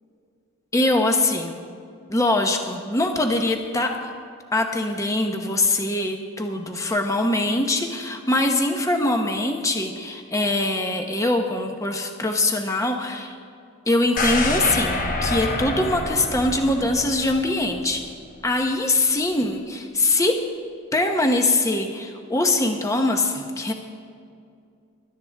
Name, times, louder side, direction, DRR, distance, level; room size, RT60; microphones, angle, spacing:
voice 1, 0.7-1.6 2.1-4.1 4.5-13.4 13.9-18.0 18.4-20.5 20.9-23.7, left 2 dB, 15° left, 3 dB, 0.9 m, -23 dB
sound 1, 14.2-18.1 18.5-18.6, left 2 dB, 40° left, 1.1 m, -27 dB
24.0 x 12.0 x 3.5 m, 2.4 s
head